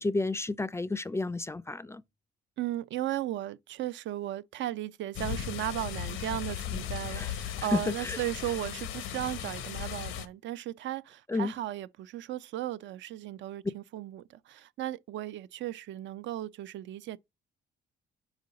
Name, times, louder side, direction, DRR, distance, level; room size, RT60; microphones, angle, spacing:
voice 1, 0.0-2.0 7.1-7.3 7.7-8.2 11.3-11.5, left 2 dB, 15° left, 0.3 m, -31 dB
voice 2, 2.6-17.2, right 13 dB, 70° right, 0.4 m, -36 dB
sound 1, 5.1-10.3, left 10 dB, 90° left, 0.8 m, -37 dB
5.2 x 4.8 x 3.8 m
cardioid pair, 90°, 20 cm